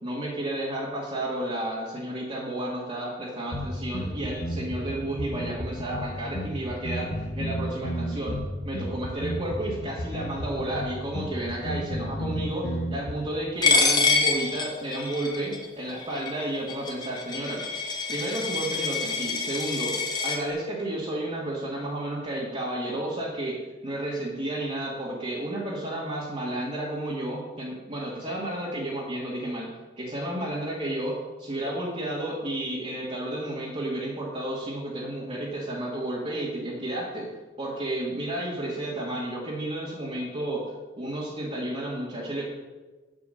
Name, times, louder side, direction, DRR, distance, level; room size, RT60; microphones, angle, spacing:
voice 1, 0.0-8.4 8.7-17.7 18.1-20.0 20.2-23.6 23.8-29.7 30.0-37.3 37.6-40.6 41.0-42.5, right 1 dB, 30° right, -6 dB, 1.8 m, -32 dB
sound 1, 3.5-13.1, equal, 75° left, 1.2 m, -32 dB
Coin (dropping), 13.6-20.4, left 4 dB, 25° left, 1.4 m, -26 dB
7.9 x 7.4 x 6.4 m, 1.2 s
head